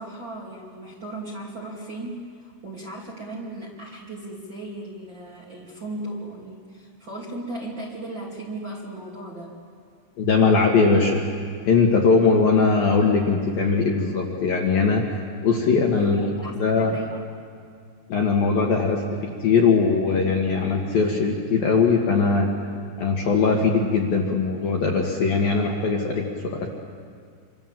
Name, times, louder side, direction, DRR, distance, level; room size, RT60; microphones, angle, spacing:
voice 1, 0.0-9.6 15.9-17.2, right 2 dB, 30° right, -4 dB, 2.6 m, -36 dB
voice 2, 10.2-11.3 11.7-15.0 15.4-16.2 16.6-17.0 18.1-22.5 23.0-26.7, left 4 dB, 60° left, 0 dB, 2.8 m, -20 dB
27.0 x 26.0 x 7.4 m, 2.1 s
omnidirectional pair, 5.9 m